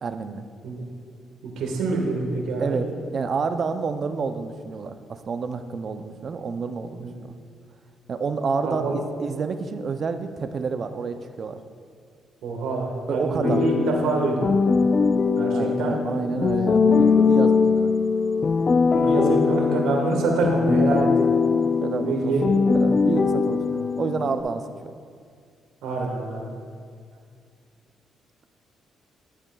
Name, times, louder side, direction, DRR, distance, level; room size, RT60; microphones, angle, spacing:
voice 1, 0.0-0.4 2.6-7.3 8.1-11.6 13.1-13.6 15.5-17.9 21.8-22.3 22.7-23.6 24.0-25.0, right 5 dB, 50° right, 9 dB, 0.4 m, -29 dB
voice 2, 1.4-2.8 7.0-7.1 8.6-9.0 12.4-14.5 15.3-16.0 18.9-21.1 21.9-22.5 23.7-23.8 25.8-26.4, right 3 dB, 85° right, 0 dB, 1.3 m, -26 dB
sound 1, 13.4-24.4, left 5 dB, 40° left, 0.3 m, -21 dB
11.5 x 7.2 x 2.3 m, 2.2 s
cardioid pair, 90°, 0 cm